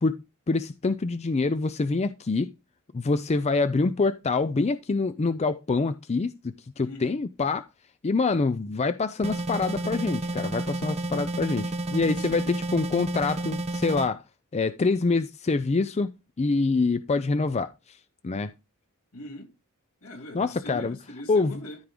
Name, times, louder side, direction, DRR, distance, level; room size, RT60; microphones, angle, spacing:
voice 1, 0.5-2.5 2.9-7.6 8.0-14.2 14.5-16.1 16.4-17.7 18.2-18.5 20.3-21.0 21.3-21.5, left 3 dB, 30° left, 0.4 m, -25 dB
voice 2, 6.8-7.2 12.0-12.5 19.1-19.5 20.0-21.8, equal, 80° left, 3.0 m, -41 dB
sound 1, 9.2-14.1, right 2 dB, 30° right, 1.0 m, -31 dB
13.5 x 4.6 x 3.8 m
head